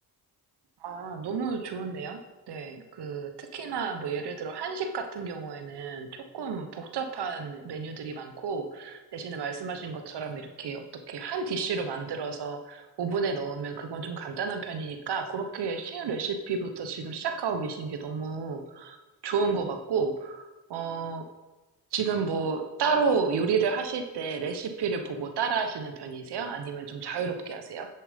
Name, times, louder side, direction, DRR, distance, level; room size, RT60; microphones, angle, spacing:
voice 1, 0.8-2.2 2.5-19.0 19.2-21.3 21.9-27.9, right 5 dB, 85° right, 6 dB, 1.2 m, -31 dB
10.0 x 7.6 x 5.3 m, 1.1 s
cardioid pair, 65°, 39 cm